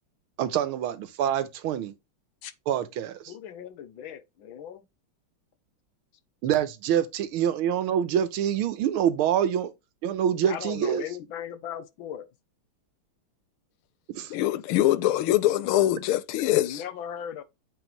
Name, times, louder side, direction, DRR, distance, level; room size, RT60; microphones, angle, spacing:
voice 1, 0.4-1.9 2.7-3.2 6.4-9.7 10.0-11.0 14.1-14.3, right 9 dB, 85° right, 1.7 m, -26 dB
voice 2, 3.3-4.8 10.5-12.3 16.6-17.4, left 9 dB, 75° left, 1.6 m, -38 dB
voice 3, 14.3-16.8, left 14 dB, 90° left, 1.6 m, -23 dB
8.1 x 4.2 x 3.1 m
omnidirectional pair, 2.3 m